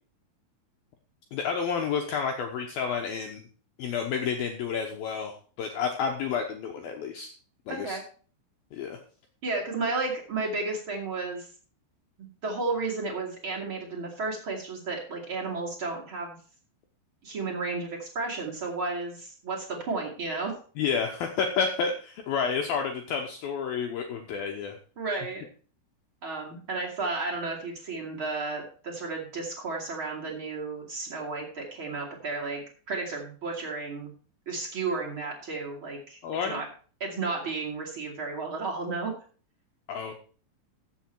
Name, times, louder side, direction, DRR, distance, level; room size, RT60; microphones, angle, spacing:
voice 1, 1.3-3.4 3.8-7.3 7.7-8.0 8.7-9.0 20.8-24.8 36.2-36.6 39.9-40.1, left 6 dB, 85° left, 3 dB, 2.1 m, -30 dB
voice 2, 7.7-8.0 9.4-11.5 12.2-16.4 17.2-20.5 25.0-25.4 26.2-32.6 32.9-34.1 34.5-36.2 36.4-36.7 37.0-39.1, right 3 dB, 35° right, -2 dB, 2.3 m, -33 dB
14.5 x 7.0 x 4.6 m, 0.40 s
omnidirectional pair, 5.8 m